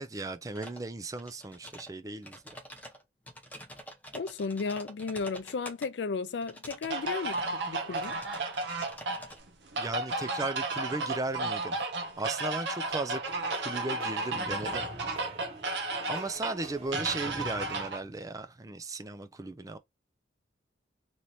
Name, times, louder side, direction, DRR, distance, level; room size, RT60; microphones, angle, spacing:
voice 1, 0.0-2.4 9.8-11.8 12.2-13.2 13.6-14.9 16.1-19.8, right 2 dB, 20° right, 0.4 m, -36 dB
sound 1, 0.6-0.9 1.2-1.9 2.2-5.9 6.4-7.0 7.2-7.5 7.9-9.4, equal, 10° left, 0.8 m, -47 dB
voice 2, 4.1-8.2, left 4 dB, 70° left, 0.4 m, -34 dB
sound 2, 6.9-18.0, right 2 dB, 70° right, 0.7 m, -33 dB
sound 3, 13.2-18.7, right 2 dB, 35° right, 0.8 m, -46 dB
3.1 x 2.9 x 4.0 m
head